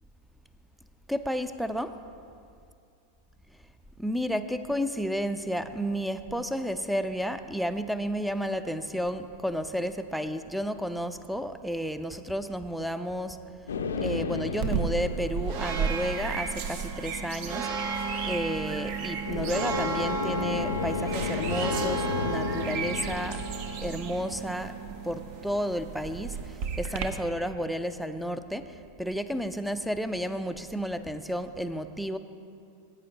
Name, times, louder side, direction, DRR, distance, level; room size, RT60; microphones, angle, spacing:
voice 1, 1.1-1.9 4.0-13.4 14.0-17.7 18.2-23.4 23.8-24.7 25.0-26.4 26.8-28.7 29.0-32.2, equal, ahead, 10 dB, 0.5 m, -32 dB
sound 1, 13.7-16.5 19.3-24.7, left 5 dB, 65° left, 0.5 m, -33 dB
sound 2, 14.6-27.1, right 5 dB, 45° right, 0.7 m, -33 dB
16.5 x 8.7 x 2.9 m, 2.4 s
figure-of-eight pair, 90°, 0 cm